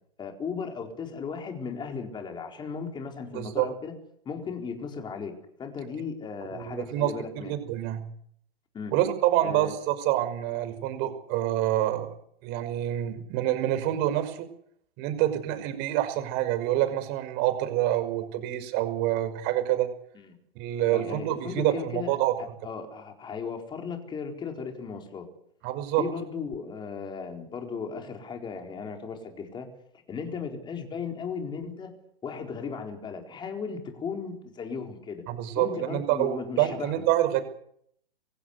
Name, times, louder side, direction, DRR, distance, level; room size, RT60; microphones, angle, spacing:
voice 1, 0.2-3.9 4.2-5.3 5.6-7.5 8.7-8.9 9.4-9.7 15.6-15.7 20.1-20.4 20.9-25.3 26.0-29.7 30.1-31.9 32.2-35.2 35.6-37.1, left 5 dB, 15° left, 4 dB, 4.3 m, -36 dB
voice 2, 3.3-3.7 6.5-8.0 8.9-12.1 12.4-14.5 15.0-19.9 20.6-22.3 25.6-26.0 35.3-37.4, right 13 dB, 35° right, 9 dB, 5.6 m, -27 dB
26.5 x 16.0 x 8.2 m, 0.66 s
hypercardioid pair, 145°, 30 cm